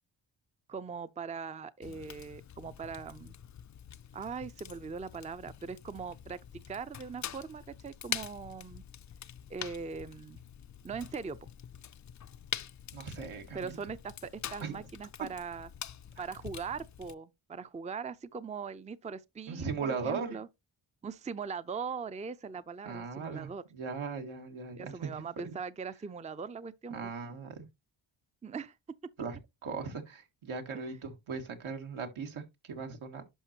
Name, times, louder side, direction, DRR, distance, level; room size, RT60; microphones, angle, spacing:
voice 1, 0.7-3.4 4.1-8.8 9.5-10.4 10.8-11.5 13.5-15.7 16.2-20.5 21.0-23.6 24.8-27.1 28.4-28.8 30.7-31.0, right 5 dB, 15° right, 0.5 m, -41 dB
Fire, 1.8-17.1, left 9 dB, 40° left, 0.4 m, -45 dB
voice 2, 12.9-13.8 14.6-14.8 19.5-20.4 22.9-25.1 25.4-25.5 26.9-27.7 29.2-33.2, right 5 dB, 80° right, 1.8 m, -38 dB
11.0 x 5.3 x 2.8 m
cardioid pair, 70°, 48 cm